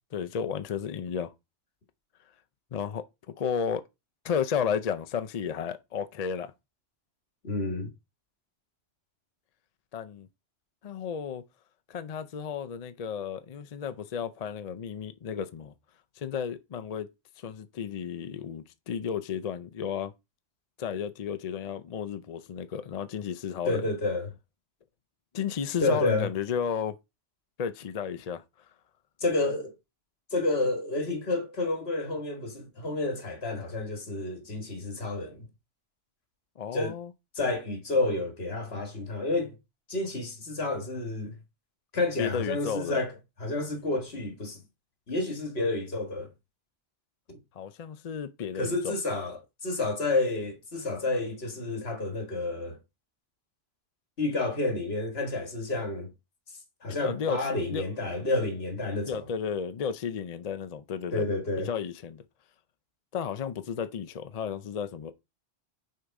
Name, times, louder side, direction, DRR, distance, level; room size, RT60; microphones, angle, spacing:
voice 1, 0.1-1.3 2.7-3.8 4.2-6.5 9.9-10.3 10.8-11.4 11.9-15.7 16.2-17.1 17.4-20.1 20.8-23.8 25.3-27.0 27.6-28.4 36.6-37.1 42.2-43.0 47.5-49.0 56.9-57.9 59.1-61.3 61.6-62.2 63.1-65.1, left 7 dB, 50° left, 0.5 m, -33 dB
voice 2, 7.4-7.9 23.7-24.3 25.8-26.3 29.2-29.7 30.3-35.5 36.7-36.9 37.4-39.6 39.9-41.3 41.9-43.1 43.4-44.6 45.1-46.3 47.3-47.4 48.5-52.8 54.2-56.1 56.8-59.3 61.1-61.7, left 2 dB, 65° left, 1.9 m, -30 dB
6.6 x 3.9 x 4.6 m
omnidirectional pair, 1.1 m